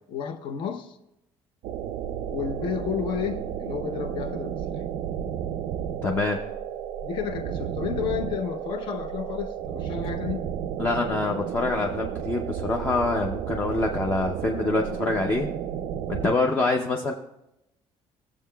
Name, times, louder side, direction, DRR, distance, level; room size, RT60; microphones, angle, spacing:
voice 1, 0.1-1.0 2.3-4.9 5.3-5.4 7.0-10.5, left 8 dB, 50° left, 0.7 m, -32 dB
sound 1, 1.6-16.3, right 9 dB, 70° right, 0.4 m, -32 dB
voice 2, 6.0-6.4 10.8-15.5 16.1-17.1, left 3 dB, 20° left, 0.5 m, -25 dB
17.0 x 7.3 x 2.2 m
cardioid pair, 175°, 10 cm